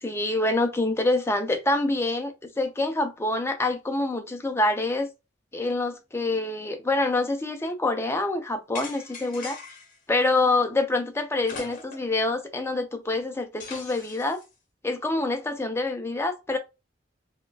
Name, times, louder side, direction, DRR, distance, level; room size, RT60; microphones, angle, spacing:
voice 1, 0.0-5.1 5.5-9.6 10.1-14.4 14.8-16.6, left 2 dB, 15° left, 0.5 m, -26 dB
sound 1, 8.7-10.0 11.4-12.2 12.5-12.6 13.6-14.4, left 4 dB, 50° left, 0.9 m, -41 dB
4.2 x 2.3 x 2.4 m
head